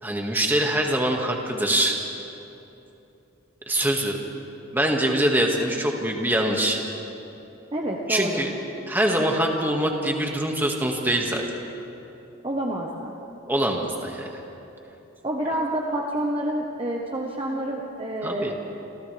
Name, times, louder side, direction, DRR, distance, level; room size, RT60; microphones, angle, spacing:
voice 1, 0.0-2.0 3.7-4.2 4.7-6.8 8.1-8.5 8.9-11.4 13.5-14.4 18.2-18.5, right 1 dB, 10° right, 0 dB, 1.9 m, -24 dB
voice 2, 7.7-8.5 12.4-13.1 15.2-18.5, right 1 dB, 25° right, -1 dB, 1.2 m, -28 dB
28.5 x 27.0 x 3.4 m, 3.0 s
head